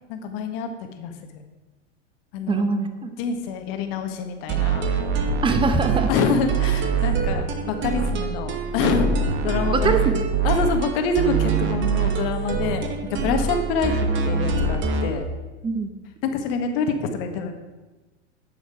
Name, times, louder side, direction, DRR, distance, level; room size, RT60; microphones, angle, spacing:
voice 1, 0.1-0.7 1.0-1.1 2.3-2.7 3.2-4.8 6.1-9.1 9.4-10.0 10.4-15.3 16.2-17.5, left 4 dB, 55° left, 6 dB, 1.5 m, -26 dB
voice 2, 2.5-3.2 5.4-6.1 9.7-10.2 15.6-15.9, right 4 dB, 15° right, 8 dB, 0.9 m, -23 dB
sound 1, 4.5-15.1, right 5 dB, 35° right, 1.2 m, -24 dB
11.0 x 7.0 x 4.8 m, 1.2 s
hypercardioid pair, 125°, 35 cm